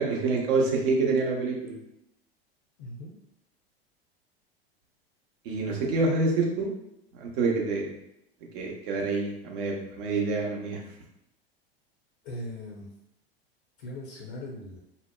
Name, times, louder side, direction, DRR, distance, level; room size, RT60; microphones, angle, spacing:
voice 1, 0.0-1.7 5.4-6.7 7.1-7.9 8.5-10.8, right 3 dB, 60° right, -1 dB, 0.7 m, -27 dB
voice 2, 2.8-3.1 12.2-12.9 13.8-14.8, left 1 dB, 55° left, -2 dB, 0.6 m, -39 dB
2.8 x 2.0 x 2.2 m, 0.82 s
hypercardioid pair, 85°, 30 cm